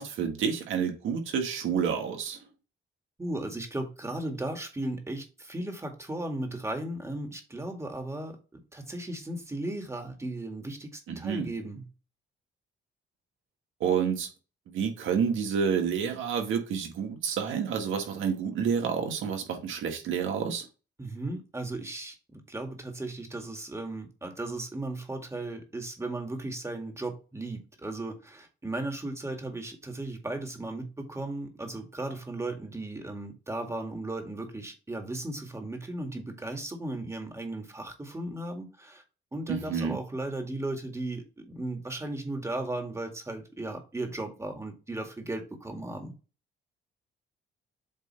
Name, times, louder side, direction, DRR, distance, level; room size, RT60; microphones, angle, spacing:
voice 1, 0.0-2.4 11.1-11.5 13.8-14.3 14.7-20.7 39.5-40.0, right 7 dB, 80° right, 1.8 m, -29 dB
voice 2, 3.2-8.4 8.7-11.8 21.0-39.0 39.3-46.1, right 2 dB, 15° right, 2.0 m, -36 dB
8.0 x 3.3 x 4.3 m
cardioid pair, 90°, 20 cm